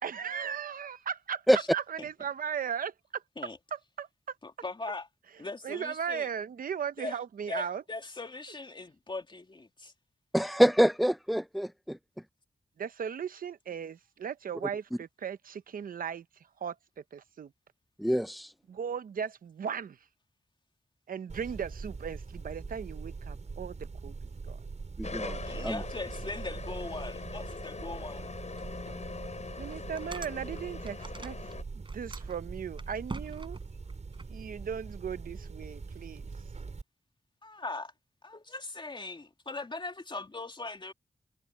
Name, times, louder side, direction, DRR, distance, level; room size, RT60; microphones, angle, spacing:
voice 1, 0.0-3.2 3.7-4.4 5.6-7.8 12.8-16.2 16.6-17.5 18.7-20.0 21.1-24.1 24.4-24.6 25.2-25.7 29.6-33.6 34.3-36.3, right 7 dB, 90° right, 0.8 m, -37 dB
voice 2, 4.4-5.1 5.4-6.3 7.0-7.2 7.5-9.9 25.5-28.3 37.4-37.9 38.2-40.9, left 3 dB, 35° left, 2.7 m, -40 dB
voice 3, 10.3-12.0 18.0-18.5 25.0-25.4 25.6-25.8, equal, ahead, 0.6 m, -25 dB
sound 1, 21.3-36.8, right 4 dB, 55° right, 6.4 m, -42 dB
sound 2, 25.0-31.6, left 4 dB, 55° left, 7.1 m, -42 dB
sound 3, 28.6-28.7 29.2-29.3 29.7-31.5 31.8-34.3, right 3 dB, 35° right, 6.5 m, -44 dB
cardioid pair, 70°, 14 cm